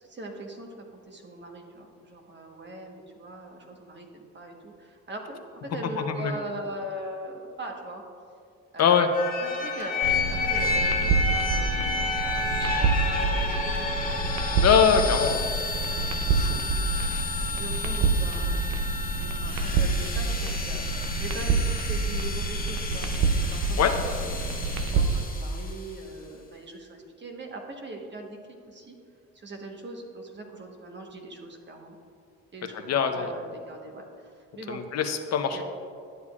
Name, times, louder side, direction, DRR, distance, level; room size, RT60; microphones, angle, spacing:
voice 1, 0.0-8.0 8.7-9.1 9.4-12.8 13.1-14.2 15.8-23.1 23.4-28.4 28.7-28.9 29.3-32.0 32.5-34.8 35.5-35.6, right 1 dB, 35° right, 2 dB, 1.2 m, -41 dB
sound 1, 9.1-25.9, left 3 dB, 30° left, 1.1 m, -31 dB
sound 2, 10.0-25.2, right 4 dB, 65° right, 0.7 m, -27 dB
voice 2, 14.6-15.4 16.3-16.6 17.1-17.2 23.8-23.9 32.9-33.3 34.7-35.6, left 7 dB, 60° left, 6 dB, 0.7 m, -22 dB
11.0 x 8.0 x 2.4 m, 2.3 s
cardioid pair, 90°, 30 cm